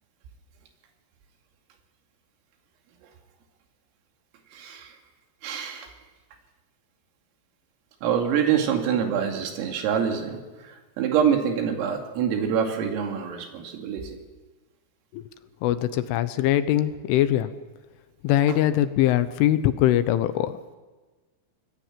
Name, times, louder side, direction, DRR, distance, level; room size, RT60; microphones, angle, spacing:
voice 1, 4.5-4.9 5.4-5.9 8.0-14.2 18.5-18.6, right 8 dB, 90° right, 3 dB, 5.1 m, -26 dB
voice 2, 15.6-17.5 18.2-20.5, left 12 dB, 80° left, 12 dB, 3.3 m, -22 dB
26.0 x 21.0 x 7.5 m, 1.3 s
omnidirectional pair, 5.9 m